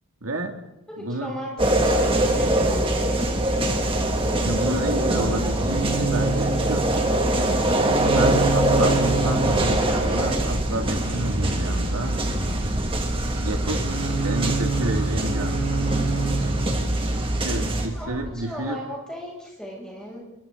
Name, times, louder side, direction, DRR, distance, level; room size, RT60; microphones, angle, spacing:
voice 1, 0.2-0.5 1.0-1.3 4.4-6.9 8.1-12.2 13.4-15.7 17.4-18.8, right 1 dB, 75° right, 4 dB, 2.6 m, -30 dB
voice 2, 0.9-2.8 17.9-20.2, equal, 5° left, -3 dB, 7.2 m, -36 dB
sound 1, 1.6-17.9, right 1 dB, 25° right, 2.3 m, -23 dB
sound 2, 5.2-18.3, right 3 dB, 60° right, 5.2 m, -29 dB
29.0 x 23.0 x 4.0 m, 0.93 s
head